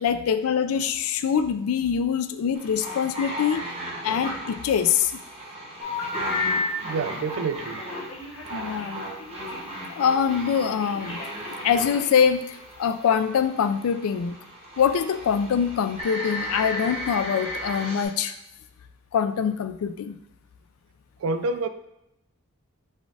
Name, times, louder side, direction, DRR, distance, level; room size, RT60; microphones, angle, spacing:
voice 1, 0.0-3.6 4.0-5.2 8.5-9.0 9.9-11.2 11.6-14.4 14.8-18.4 19.1-20.2, left 7 dB, 85° left, 11 dB, 0.3 m, -24 dB
sound 1, 2.5-18.0, equal, 30° right, 1.0 m, -36 dB
Telephone, 5.8-6.7 7.8-9.9 10.8-12.2, left 4 dB, 65° left, 1.1 m, -32 dB
voice 2, 6.8-7.8 21.2-21.7, right 3 dB, 70° right, 11 dB, 0.3 m, -28 dB
4.1 x 2.4 x 4.6 m, 0.88 s
head